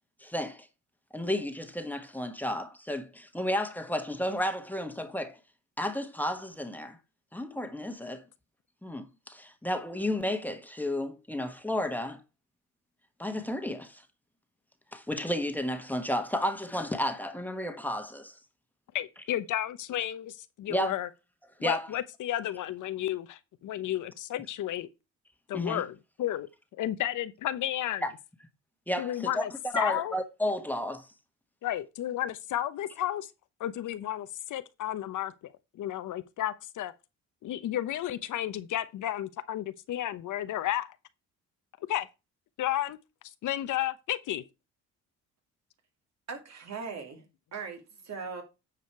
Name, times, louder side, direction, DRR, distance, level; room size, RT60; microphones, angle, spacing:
voice 1, 0.2-0.7 1.1-5.4 5.8-7.0 7.3-8.2 8.8-12.2 13.2-14.0 14.9-18.4 20.7-20.9 21.6-21.9 25.5-25.8 28.0-28.1 28.9-29.4 29.7-31.1, left 1 dB, 5° left, 1.4 m, -32 dB
voice 2, 18.9-21.1 21.6-24.9 25.5-25.9 26.2-26.5 26.8-28.1 29.0-29.5 29.7-30.1 31.6-33.3 33.6-35.3 35.8-36.9 37.4-40.9 41.9-42.1 42.6-43.0 43.4-44.4, left 12 dB, 65° left, 0.8 m, -32 dB
voice 3, 46.3-47.2 47.5-48.4, right 5 dB, 55° right, 2.5 m, -39 dB
9.3 x 5.0 x 4.6 m
cardioid pair, 90°, 33 cm